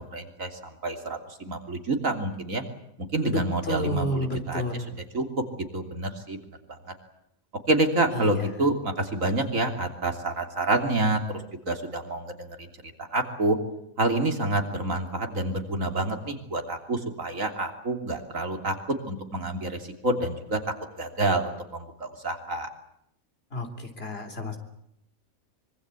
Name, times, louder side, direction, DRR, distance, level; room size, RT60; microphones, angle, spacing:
voice 1, 0.1-2.6 3.1-4.6 5.1-5.4 5.7-6.4 6.9-7.0 7.7-12.7 13.1-13.6 14.0-18.8 19.1-20.6 21.0-22.7, right 2 dB, 70° right, 5 dB, 3.5 m, -28 dB
voice 2, 3.2-4.9 8.1-8.6 23.5-24.6, left 1 dB, 45° left, 6 dB, 3.8 m, -30 dB
25.0 x 24.0 x 8.4 m, 0.75 s
omnidirectional pair, 1.4 m